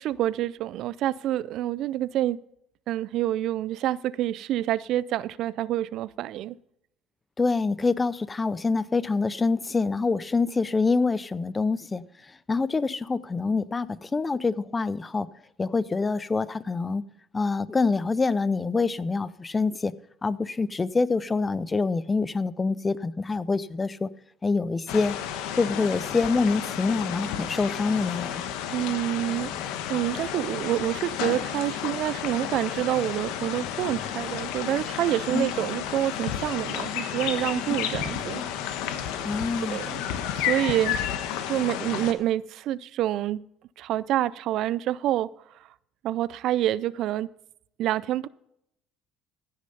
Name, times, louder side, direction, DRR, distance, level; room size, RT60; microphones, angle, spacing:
voice 1, 0.0-2.4 2.9-6.6 28.7-29.5 29.9-38.4 39.6-40.0 40.3-41.0 41.5-43.4 43.8-45.3 46.0-47.3 47.8-48.3, right 13 dB, 60° right, 0.3 m, -27 dB
voice 2, 7.4-12.1 12.5-15.3 15.6-17.0 17.3-19.9 20.2-24.1 24.4-25.2 25.6-28.5 35.3-35.5 39.2-39.8, left 4 dB, 20° left, 0.4 m, -26 dB
sound 1, 24.9-42.1, left 9 dB, 80° left, 1.1 m, -32 dB
15.0 x 6.5 x 5.5 m
cardioid pair, 120°, 0 cm